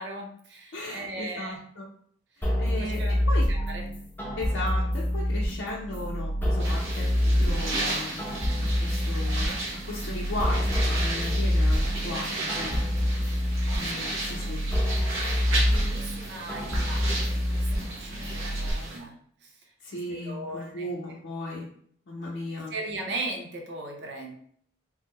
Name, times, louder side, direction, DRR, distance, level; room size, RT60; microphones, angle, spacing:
voice 1, 0.0-1.6 2.8-3.9 13.8-14.1 15.3-19.6 19.9-20.9 22.7-24.3, right 2 dB, 55° right, 1 dB, 0.6 m, -38 dB
voice 2, 0.7-1.9 2.4-3.5 4.4-9.5 9.8-12.8 13.8-14.6 19.8-21.7 22.1-22.7, left 1 dB, 65° left, -5 dB, 0.5 m, -36 dB
sound 1, 2.4-18.7, equal, 10° left, 0.4 m, -27 dB
sound 2, 6.6-19.0, right 2 dB, 90° right, 1.0 m, -34 dB
2.9 x 2.1 x 3.5 m, 0.62 s
head